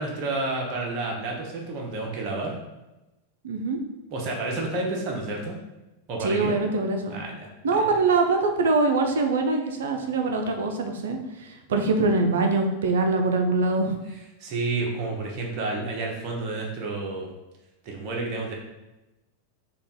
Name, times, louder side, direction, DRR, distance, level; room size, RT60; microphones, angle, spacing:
voice 1, 0.0-2.5 4.1-5.6 6.1-6.5 7.1-7.8 14.4-17.3 17.8-18.5, right 2 dB, 40° right, -1 dB, 0.8 m, -30 dB
voice 2, 3.4-3.8 6.2-7.1 7.6-14.0, right 3 dB, 60° right, 4 dB, 0.5 m, -23 dB
4.0 x 2.4 x 3.6 m, 1.0 s
figure-of-eight pair, 90°, 0 cm